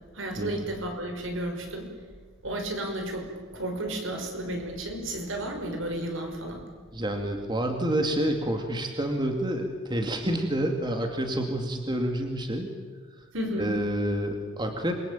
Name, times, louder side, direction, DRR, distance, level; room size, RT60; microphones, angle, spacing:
voice 1, 0.1-1.9 2.4-6.6 13.3-13.7, right 1 dB, 70° right, 3 dB, 5.8 m, -33 dB
voice 2, 6.9-12.7 13.2-13.3 13.6-15.0, right 1 dB, 20° right, 4 dB, 2.4 m, -28 dB
28.0 x 23.0 x 9.1 m, 1.5 s
head